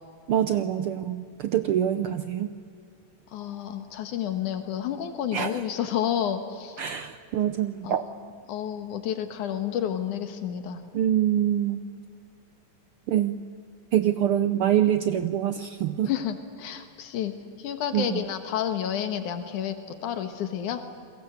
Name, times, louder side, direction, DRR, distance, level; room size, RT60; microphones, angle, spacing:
voice 1, 0.3-2.5 5.3-5.6 6.8-8.1 10.9-11.9 13.1-13.4 13.9-16.1 17.9-18.2, right 10 dB, 80° right, 11 dB, 1.2 m, -25 dB
voice 2, 3.3-6.8 7.8-7.9 8.5-10.8 16.0-17.3 17.6-19.7 20.0-20.8, left 9 dB, 85° left, 8 dB, 2.8 m, -30 dB
29.0 x 22.0 x 8.0 m, 2.4 s
omnidirectional pair, 3.4 m